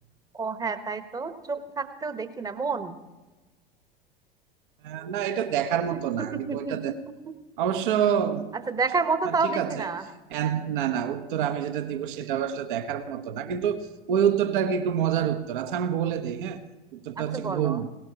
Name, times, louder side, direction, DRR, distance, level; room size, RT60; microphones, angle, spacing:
voice 1, 0.3-3.0 5.9-6.0 6.3-6.9 7.2-7.3 8.7-10.0 17.2-17.8, right 4 dB, 15° right, 1.0 m, -29 dB
voice 2, 4.8-7.0 7.6-8.5 9.2-9.9 10.3-16.6 16.9-17.9, right 9 dB, 60° right, 1.0 m, -27 dB
18.0 x 17.0 x 2.9 m
figure-of-eight pair, 85°, 29 cm